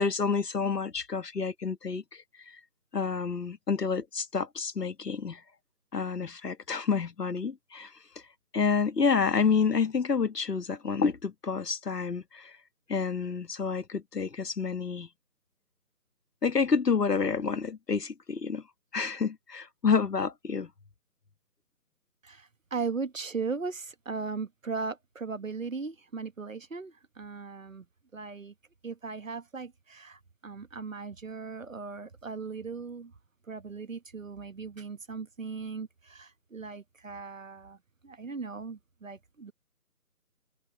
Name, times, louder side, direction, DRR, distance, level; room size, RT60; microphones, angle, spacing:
voice 1, 0.0-2.6 2.9-5.4 5.9-7.9 8.5-12.6 12.9-15.1 16.4-18.6 18.9-20.7, left 5 dB, 85° left, 1.5 m, -29 dB
voice 2, 22.2-27.8 28.1-28.5 28.8-33.1 33.5-37.8 38.0-39.5, right 4 dB, 55° right, 1.3 m, -38 dB
open air
figure-of-eight pair, 175°, 47 cm